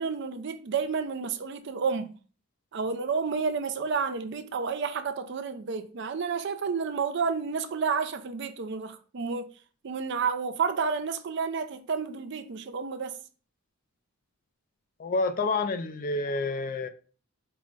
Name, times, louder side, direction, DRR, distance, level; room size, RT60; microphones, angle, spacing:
voice 1, 0.0-2.2 2.7-9.5 9.8-13.2, right 5 dB, 55° right, 0.4 m, -30 dB
voice 2, 15.0-16.9, left 3 dB, 40° left, 0.3 m, -28 dB
4.7 x 2.1 x 3.7 m
head